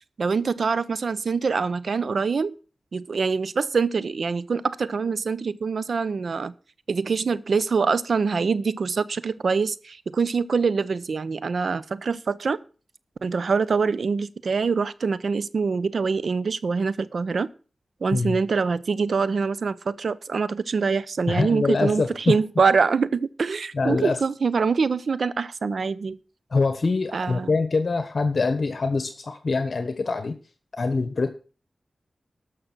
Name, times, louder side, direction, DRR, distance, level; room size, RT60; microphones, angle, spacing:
voice 1, 0.2-2.6 2.9-6.5 6.9-12.6 13.2-17.5 18.0-26.2 27.1-27.6, right 5 dB, 75° right, 17 dB, 0.7 m, -24 dB
voice 2, 21.3-22.3 23.7-24.2 26.5-30.4 30.7-31.3, left 3 dB, 60° left, 10 dB, 1.2 m, -24 dB
12.5 x 6.4 x 6.2 m, 0.36 s
wide cardioid pair, 70°, 0 cm